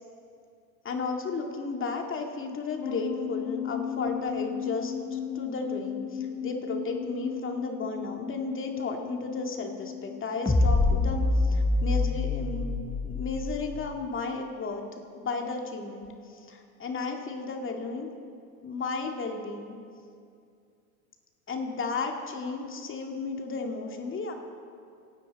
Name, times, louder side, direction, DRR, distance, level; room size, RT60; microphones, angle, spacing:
voice 1, 0.8-12.7 13.0-18.1 18.6-19.8 21.5-24.3, left 4 dB, 25° left, 3 dB, 2.3 m, -34 dB
sound 1, 2.8-10.2, left 9 dB, 60° left, 1.1 m, -35 dB
sound 2, 10.5-13.9, left 2 dB, 10° left, 1.0 m, -25 dB
26.0 x 10.0 x 4.3 m, 2.4 s
hypercardioid pair, 90°, 45 cm